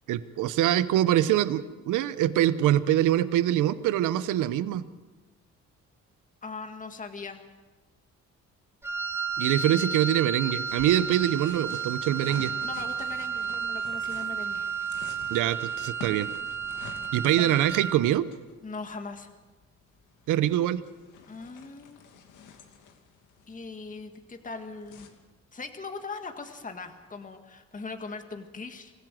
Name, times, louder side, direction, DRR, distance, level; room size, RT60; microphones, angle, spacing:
voice 1, 0.1-4.8 9.4-12.5 15.3-16.3 17.1-18.3 20.3-20.8, right 12 dB, 90° right, 15 dB, 0.9 m, -24 dB
voice 2, 6.4-7.4 12.6-14.7 17.2-17.5 18.6-19.3 21.3-22.0 23.5-25.1 25.5-28.9, left 4 dB, 25° left, 6 dB, 1.8 m, -40 dB
Wind instrument woodwind instrument, 8.8-18.1, right 6 dB, 10° right, 2.5 m, -32 dB
sound 1, 10.7-25.1, left 6 dB, 85° left, 2.6 m, -49 dB
25.0 x 15.5 x 7.7 m, 1.2 s
cardioid pair, 90°, 30 cm